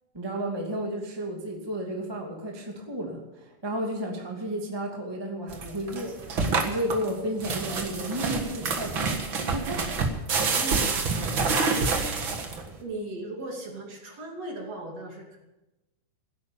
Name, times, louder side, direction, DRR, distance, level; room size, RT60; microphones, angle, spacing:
voice 1, 0.1-9.1 9.5-9.8, right 1 dB, 10° right, 0 dB, 1.0 m, -32 dB
sound 1, 5.5-12.8, right 4 dB, 85° right, 1.1 m, -27 dB
voice 2, 10.4-15.4, right 2 dB, 40° right, 0 dB, 3.3 m, -38 dB
16.0 x 12.0 x 7.1 m, 1.0 s
omnidirectional pair, 5.1 m